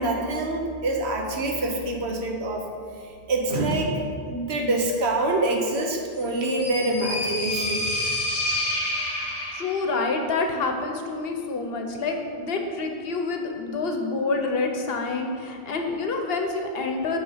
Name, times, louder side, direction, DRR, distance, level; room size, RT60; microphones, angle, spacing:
voice 1, 0.0-2.6 3.3-4.0 4.3-7.9, right 2 dB, 85° right, 1 dB, 1.2 m, -25 dB
sound 1, 6.2-10.0, left 1 dB, 25° left, 0.9 m, -28 dB
voice 2, 9.5-17.2, left 3 dB, 70° left, 4 dB, 1.0 m, -27 dB
8.6 x 3.4 x 5.6 m, 2.2 s
omnidirectional pair, 1.1 m